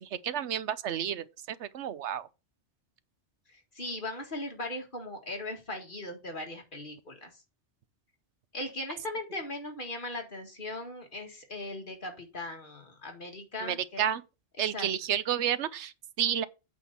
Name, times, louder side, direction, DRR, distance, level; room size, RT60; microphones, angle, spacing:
voice 1, 0.0-2.3 13.6-14.2 14.6-16.5, right 9 dB, 85° right, 1.0 m, -31 dB
voice 2, 3.5-7.3 8.5-14.1 14.7-14.9, left 1 dB, 45° left, 2.2 m, -39 dB
8.4 x 3.9 x 6.7 m
omnidirectional pair, 1.2 m